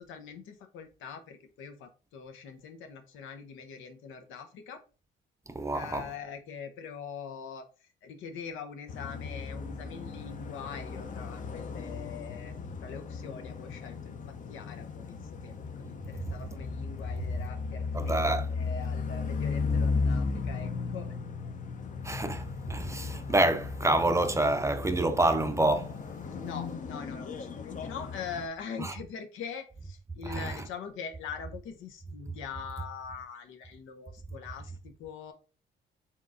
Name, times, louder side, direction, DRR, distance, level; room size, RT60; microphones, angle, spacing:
voice 1, 0.0-4.8 5.7-7.7 8.0-12.6 12.8-21.1 26.4-35.3, left 6 dB, 90° left, 0.8 m, -43 dB
voice 2, 5.5-6.1 17.9-18.5 22.0-25.9 26.4-26.5 28.8-28.9 30.3-30.6, right 2 dB, 15° right, 0.5 m, -27 dB
sound 1, 8.9-28.5, left 4 dB, 40° left, 0.6 m, -35 dB
4.4 x 3.7 x 2.5 m
cardioid pair, 90°, 20 cm